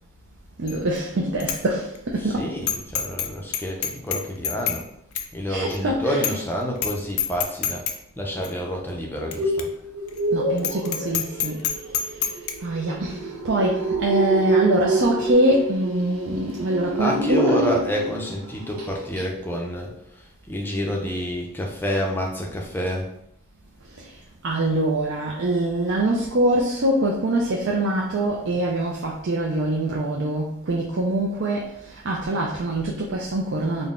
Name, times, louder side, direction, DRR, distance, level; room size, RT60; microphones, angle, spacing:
voice 1, 0.6-2.5 5.5-6.2 10.3-11.6 12.6-17.6 24.0-24.1 24.4-33.9, right 1 dB, 55° right, -2 dB, 0.5 m, -24 dB
Bicycle bell, 0.7-1.0 1.4-1.6 2.0-2.1 2.7-3.3 3.5-4.8 5.2-5.3 5.7-5.8 6.2-6.5 6.8-6.9 7.2-8.0 8.4-8.5 9.3-9.4 9.6-9.7 10.1-10.2 10.6-12.5, left 9 dB, 80° left, 0.5 m, -26 dB
voice 2, 2.2-4.8 5.3-7.9 8.2-9.7 16.9-23.1, equal, 10° left, -1 dB, 0.5 m, -28 dB
sound 1, 9.0-18.3 18.6-18.9 19.2-19.3, right 2 dB, 85° right, 0.9 m, -27 dB
3.8 x 2.2 x 3.6 m, 0.75 s
head